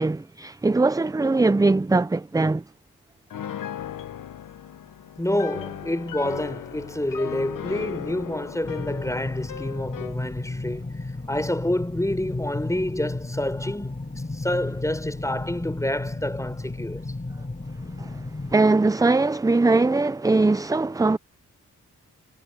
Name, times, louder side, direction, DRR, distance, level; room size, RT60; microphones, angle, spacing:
voice 1, 0.0-2.6 18.0-18.2 18.5-21.2, right 3 dB, 10° right, 0.5 m, -21 dB
Piano, 3.3-10.2, left 9 dB, 80° left, 1.1 m, -37 dB
voice 2, 5.2-11.0 11.3-14.0 14.3-17.0, left 1 dB, 10° left, 5.3 m, -28 dB
sound 1, 8.6-18.6, left 2 dB, 25° left, 5.4 m, -33 dB
cardioid pair, 55°, 32 cm